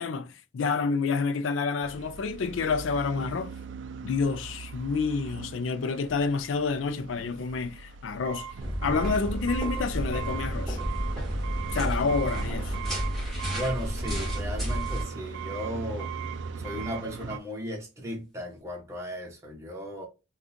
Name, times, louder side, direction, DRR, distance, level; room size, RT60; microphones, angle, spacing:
voice 1, 0.0-3.5 4.0-8.5 8.8-10.8 11.7-12.8, left 4 dB, 80° left, 0.4 m, -28 dB
sound 1, 1.8-17.4, right 6 dB, 65° right, 0.3 m, -39 dB
sound 2, 8.6-15.0, equal, ahead, 1.7 m, -31 dB
voice 2, 13.5-16.1 16.6-20.1, equal, 15° right, 0.9 m, -36 dB
3.6 x 2.3 x 2.6 m
head